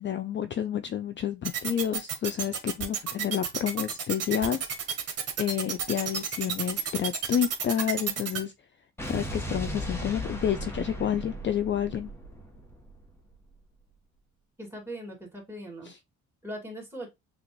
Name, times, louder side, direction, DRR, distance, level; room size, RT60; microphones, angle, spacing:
voice 1, 0.0-8.5 9.0-12.1 15.8-16.0, left 9 dB, 40° left, 0.4 m, -30 dB
sound 1, 1.4-8.4, right 7 dB, 55° right, 1.1 m, -30 dB
Explosion, 9.0-13.3, equal, 10° left, 1.2 m, -36 dB
voice 2, 14.6-15.9 16.4-17.1, right 1 dB, 10° right, 2.2 m, -40 dB
6.0 x 2.5 x 3.0 m
cardioid pair, 90°, 30 cm